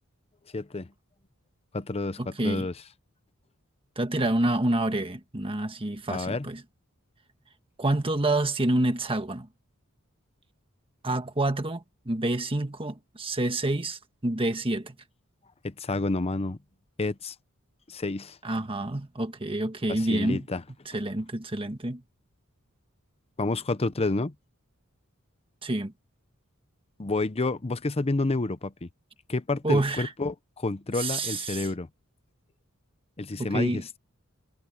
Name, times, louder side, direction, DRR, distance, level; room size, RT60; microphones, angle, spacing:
voice 1, 0.5-0.9 1.7-2.7 6.1-6.5 15.6-16.6 17.0-17.3 17.9-18.4 19.9-20.6 23.4-24.3 27.0-28.9 29.3-31.9 33.2-34.0, left 2 dB, 30° left, 0.7 m, -29 dB
voice 2, 2.2-2.7 3.9-6.6 7.8-9.5 11.0-14.9 18.4-20.5 20.8-22.0 25.6-25.9 29.6-30.1 30.9-31.7 33.4-33.8, right 1 dB, 25° right, 1.5 m, -28 dB
head